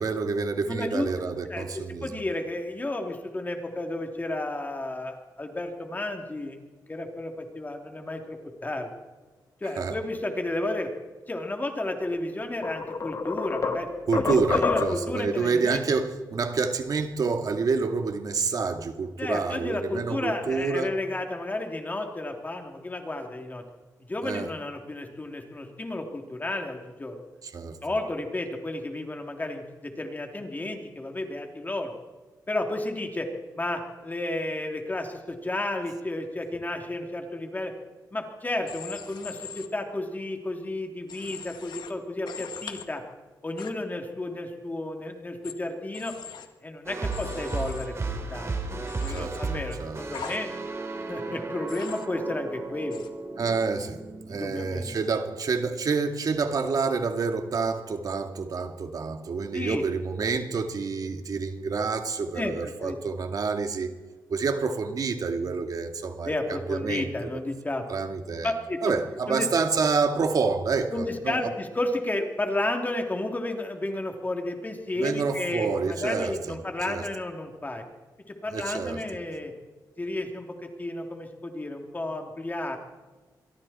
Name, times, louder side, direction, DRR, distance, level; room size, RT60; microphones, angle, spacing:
voice 1, 0.0-2.1 9.8-10.0 14.1-21.0 24.2-24.5 27.4-27.8 49.1-49.4 49.8-50.0 53.4-63.9 64.3-67.1 67.9-68.5 68.8-71.4 75.0-76.6 76.9-77.1 78.5-79.0, right 4 dB, 55° right, 2.2 m, -28 dB
voice 2, 0.7-6.6 6.9-8.9 9.6-10.9 11.3-13.9 14.1-15.8 19.2-23.6 24.1-27.2 27.8-31.9 32.5-33.3 33.5-37.7 38.1-43.0 43.4-46.1 46.6-50.5 51.1-53.0 54.3-54.9 59.5-59.8 62.3-63.0 66.2-67.8 68.4-68.9 69.3-69.5 70.9-77.8 78.4-79.5 80.0-82.8, left 2 dB, 25° left, 3.0 m, -32 dB
sound 1, 12.0-12.2 12.6-15.2, left 4 dB, 45° left, 2.0 m, -28 dB
Human voice / Train, 38.7-39.7 41.1-41.9 42.3-42.8 43.6-43.7 45.4-45.5 45.9-46.5 47.1-47.9 48.9-49.2 50.1-50.4 51.7-52.1 52.9-53.1, left 7 dB, 85° left, 1.9 m, -41 dB
sound 2, 46.9-55.0, right 3 dB, 40° right, 3.5 m, -34 dB
26.0 x 23.0 x 4.4 m
cardioid pair, 95°, 7 cm